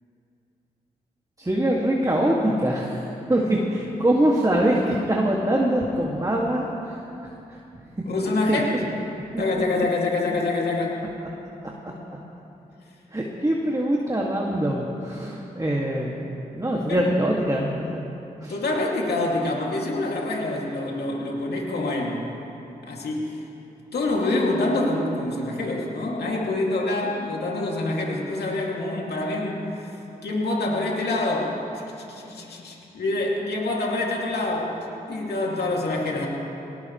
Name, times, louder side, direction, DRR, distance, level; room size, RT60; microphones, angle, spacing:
voice 1, 1.4-3.0 3.3-6.7 8.5-8.8 11.8-11.9 13.1-16.2 16.5-18.0 18.4-18.5, right 1 dB, 20° right, -3 dB, 2.3 m, -23 dB
voice 2, 8.1-8.6 9.4-11.1 16.9-17.0 18.5-22.2 22.8-23.4 23.9-29.7 30.2-31.5 32.1-34.7 35.1-36.3, left 2 dB, 80° left, -2 dB, 2.6 m, -26 dB
19.0 x 18.5 x 3.3 m, 2.9 s
supercardioid pair, 40°, 17 cm